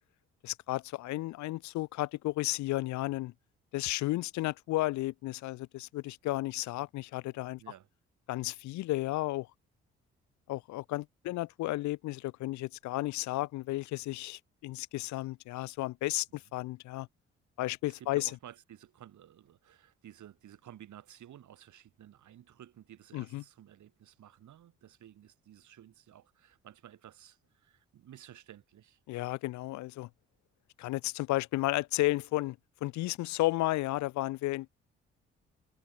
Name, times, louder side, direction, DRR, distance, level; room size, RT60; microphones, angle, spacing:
voice 1, 0.4-3.3 3.7-7.6 8.3-9.5 10.5-17.1 17.6-18.3 23.1-23.4 29.1-30.1 30.8-32.6 32.8-34.7, left 18 dB, 60° left, 0.5 m, -33 dB
voice 2, 17.8-29.0 33.1-33.2, right 11 dB, 65° right, 4.9 m, -54 dB
hypercardioid pair, 45°, 32 cm